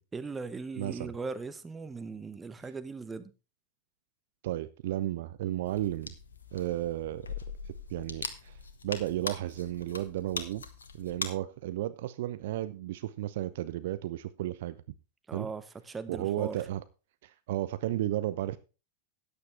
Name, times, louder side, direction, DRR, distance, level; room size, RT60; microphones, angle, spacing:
voice 1, 0.1-3.3 15.3-16.6, right 4 dB, 15° right, 1.0 m, -39 dB
voice 2, 0.8-1.1 4.4-6.1 6.5-7.3 7.9-8.6 8.8-10.6 11.0-14.8 15.3-15.5 16.1-16.8 17.2-18.6, right 14 dB, 55° right, 0.6 m, -33 dB
sound 1, 5.6-11.3, left 5 dB, 70° left, 1.3 m, -41 dB
13.5 x 9.6 x 3.3 m
figure-of-eight pair, 90°, 0 cm